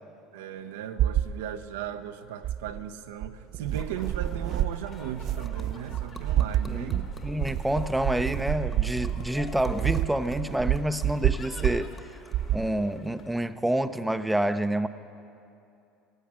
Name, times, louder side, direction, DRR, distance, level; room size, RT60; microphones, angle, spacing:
voice 1, 0.3-7.0, right 9 dB, 85° right, 8 dB, 0.7 m, -37 dB
sound 1, 1.0-1.3 2.4-2.8 3.2-11.9 12.3-12.7, right 12 dB, 55° right, 0.3 m, -28 dB
sound 2, 3.8-13.4, left 4 dB, 45° left, 1.9 m, -49 dB
sound 3, 4.5-13.9, left 2 dB, 15° left, 1.2 m, -53 dB
voice 2, 6.7-11.9 12.5-14.9, right 1 dB, 5° right, 10 dB, 0.6 m, -28 dB
16.0 x 8.3 x 8.7 m, 2.6 s
hypercardioid pair, 85°, 0 cm